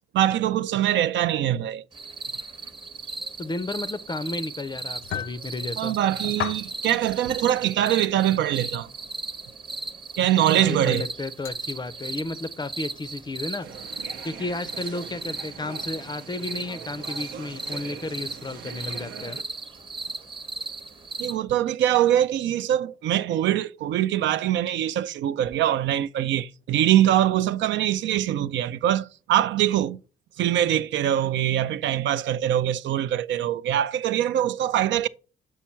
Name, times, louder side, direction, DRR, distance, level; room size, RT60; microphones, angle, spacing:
voice 1, 0.1-1.8 5.8-8.9 10.2-11.1 21.2-30.0 30.4-35.1, right 12 dB, 70° right, 0.4 m, -23 dB
sound 1, 1.9-21.4, right 3 dB, 25° right, 0.8 m, -37 dB
voice 2, 3.4-6.0 10.6-13.7 14.2-19.4, left 2 dB, 20° left, 0.5 m, -33 dB
sound 2, 4.9-5.4 6.2-6.7 7.2-7.4 8.3-8.4 10.3-10.5 11.4-11.5, left 9 dB, 75° left, 0.7 m, -32 dB
sound 3, 13.6-19.4, right 6 dB, 85° right, 0.8 m, -42 dB
7.2 x 4.6 x 4.4 m
cardioid pair, 90°, 20 cm